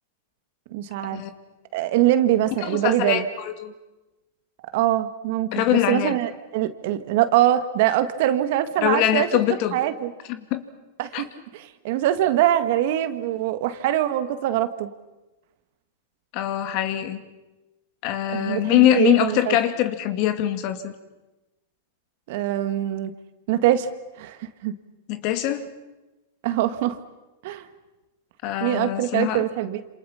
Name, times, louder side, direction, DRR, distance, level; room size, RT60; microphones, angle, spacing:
voice 1, 0.7-1.2 1.7-3.3 4.7-9.3 9.7-10.1 11.0-14.9 18.3-19.6 22.3-23.1 23.5-23.9 24.2-24.7 26.4-27.0 27.4-27.7 28.6-29.8, right 12 dB, 60° right, 10 dB, 1.8 m, -23 dB
voice 2, 2.6-3.7 5.5-6.1 8.8-9.8 10.5-10.6 11.1-11.2 16.3-17.2 18.0-20.9 25.1-25.7 28.4-29.4, left 13 dB, 50° left, 9 dB, 2.2 m, -23 dB
27.5 x 27.0 x 5.8 m, 1.1 s
hypercardioid pair, 130°, 0 cm